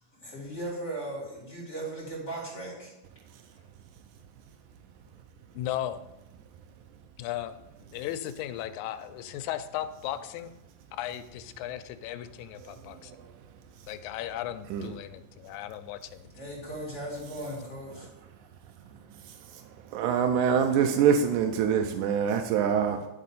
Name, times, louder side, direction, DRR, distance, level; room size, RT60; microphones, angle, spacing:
voice 1, 0.1-2.9 3.5-3.7 16.3-18.1, right 1 dB, 25° left, 2.7 m, -37 dB
voice 2, 5.5-6.0 7.2-7.5 7.8-10.5 11.0-13.1 13.9-16.3, left 12 dB, 80° left, 1.9 m, -36 dB
voice 3, 19.9-23.1, right 7 dB, 90° right, 2.0 m, -25 dB
10.5 x 3.7 x 4.1 m
omnidirectional pair, 3.5 m